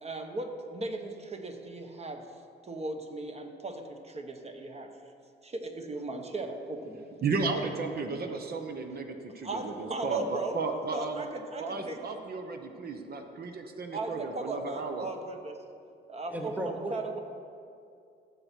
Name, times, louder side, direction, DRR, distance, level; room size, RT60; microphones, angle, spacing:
voice 1, 0.0-5.0 5.4-7.0 8.2-8.3 8.9-9.0 9.4-10.6 10.9-12.2 13.9-15.6 16.1-16.5 16.9-17.2, right 2 dB, 30° right, 5 dB, 1.2 m, -37 dB
voice 2, 7.2-11.3 11.6-15.1, right 4 dB, 50° right, 5 dB, 1.0 m, -34 dB
voice 3, 16.3-17.2, right 1 dB, 5° right, 4 dB, 0.8 m, -36 dB
15.5 x 6.9 x 4.6 m, 2.4 s
cardioid pair, 90°, 20 cm